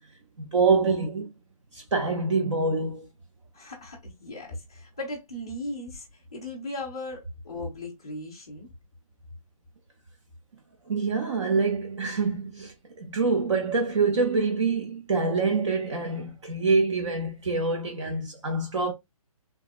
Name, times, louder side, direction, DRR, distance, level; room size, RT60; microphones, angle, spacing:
voice 1, 0.4-1.3 1.7-3.1 10.9-18.9, right 4 dB, 55° right, 0.7 m, -25 dB
voice 2, 3.5-8.7, left 1 dB, 10° left, 0.4 m, -37 dB
3.5 x 2.0 x 2.3 m
hypercardioid pair, 175°, 19 cm